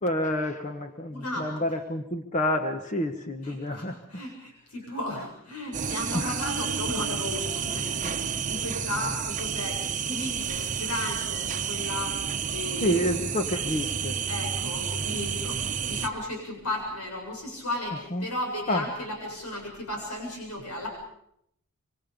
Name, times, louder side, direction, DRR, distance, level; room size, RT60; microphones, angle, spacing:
voice 1, 0.0-4.0 6.1-6.3 12.8-14.2 18.1-18.3 18.7-18.8, left 1 dB, 35° left, 6 dB, 1.2 m, -28 dB
voice 2, 1.1-1.7 3.4-12.2 12.5-13.1 14.3-20.9, left 1 dB, 85° left, 1 dB, 7.4 m, -35 dB
sound 1, 5.7-16.1, right 7 dB, 35° right, 1.0 m, -30 dB
26.5 x 24.5 x 5.3 m, 0.74 s
head